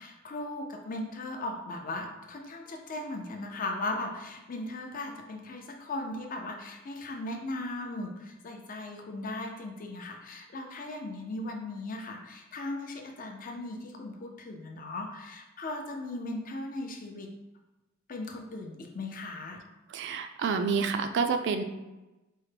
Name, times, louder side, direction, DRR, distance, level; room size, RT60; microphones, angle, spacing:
voice 1, 0.0-17.3 18.1-19.6, left 2 dB, 40° left, 2 dB, 0.5 m, -38 dB
voice 2, 19.9-21.6, right 5 dB, 55° right, 7 dB, 0.3 m, -28 dB
4.5 x 2.1 x 3.3 m, 1.0 s
head